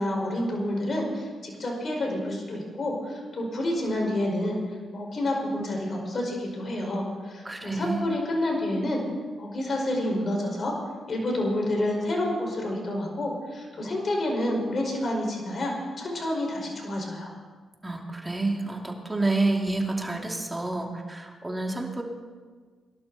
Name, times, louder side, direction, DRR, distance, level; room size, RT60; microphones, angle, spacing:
voice 1, 0.0-4.6 4.9-9.0 9.4-10.7 11.1-17.3, left 1 dB, 50° left, 0 dB, 5.3 m, -29 dB
voice 2, 7.4-8.1 17.8-22.0, right 2 dB, 20° right, 1 dB, 2.8 m, -29 dB
22.0 x 12.0 x 4.2 m, 1.5 s
supercardioid pair, 60°, 0 cm